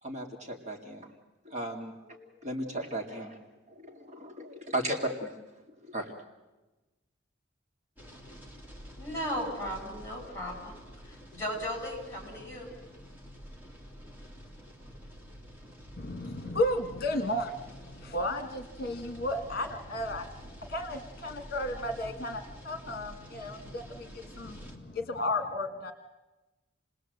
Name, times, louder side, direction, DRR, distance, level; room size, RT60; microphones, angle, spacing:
voice 1, 0.0-1.1 1.4-3.4 3.7-5.3 5.8-6.1, right 1 dB, 35° right, 2 dB, 2.3 m, -36 dB
sound 1, 8.0-24.8, equal, 10° right, 2.9 m, -48 dB
voice 2, 9.0-10.8 11.0-12.7, equal, 15° left, 1 dB, 7.6 m, -36 dB
voice 3, 16.0-20.3 20.7-25.9, left 1 dB, 50° left, 7 dB, 1.5 m, -33 dB
29.0 x 19.5 x 7.9 m, 1.1 s
head